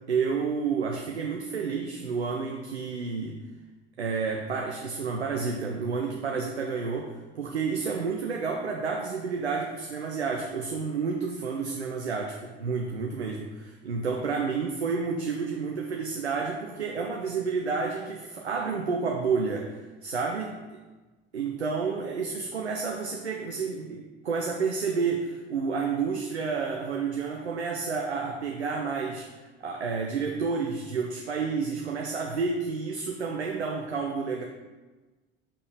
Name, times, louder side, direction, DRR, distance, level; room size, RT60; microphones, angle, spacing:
voice 1, 0.0-3.4 4.0-20.5 21.3-29.3 29.6-34.4, right 5 dB, 90° right, 1 dB, 0.5 m, -30 dB
5.6 x 5.1 x 3.4 m, 1.2 s
figure-of-eight pair, 60°, 32 cm